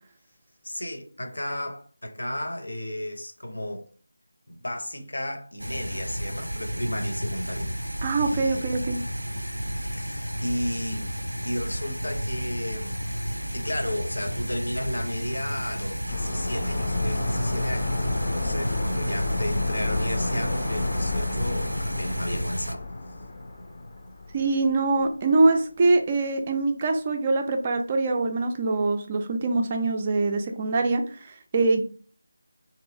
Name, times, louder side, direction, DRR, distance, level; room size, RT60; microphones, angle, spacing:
voice 1, 0.6-3.9 4.5-7.7 8.2-8.7 9.9-11.1 11.4-13.0 13.3-18.0 18.3-22.9, left 1 dB, 70° left, 0.8 m, -33 dB
sound 1, 5.6-22.7, equal, 90° right, 0.4 m, -32 dB
voice 2, 8.0-9.0 24.3-31.8, right 3 dB, 25° right, 0.4 m, -24 dB
sound 2, 16.1-24.8 25.1-25.2, left 2 dB, 35° left, 0.5 m, -30 dB
3.0 x 2.9 x 2.6 m
figure-of-eight pair, 160°, 0 cm